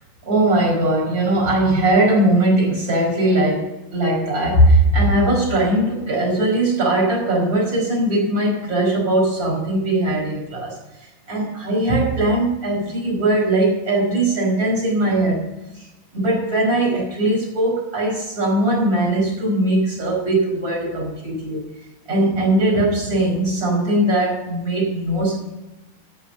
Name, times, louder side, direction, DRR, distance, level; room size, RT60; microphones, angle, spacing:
voice 1, 0.2-15.5 15.7-15.9 16.1-21.6 22.1-25.3, right 1 dB, 25° right, -4 dB, 5.7 m, -19 dB
14.5 x 7.1 x 6.5 m, 1.0 s
omnidirectional pair, 3.9 m